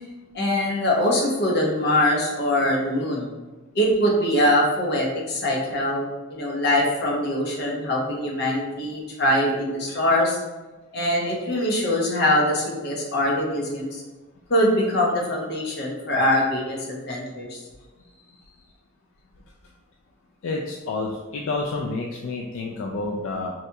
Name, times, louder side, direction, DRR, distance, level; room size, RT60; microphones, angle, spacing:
voice 1, 0.3-3.3 3.7-10.4 10.9-14.0 14.5-17.6, left 1 dB, 55° left, -3 dB, 0.8 m, -23 dB
voice 2, 20.4-23.5, left 3 dB, 70° left, 0 dB, 0.3 m, -29 dB
4.1 x 2.7 x 2.2 m, 1.2 s
head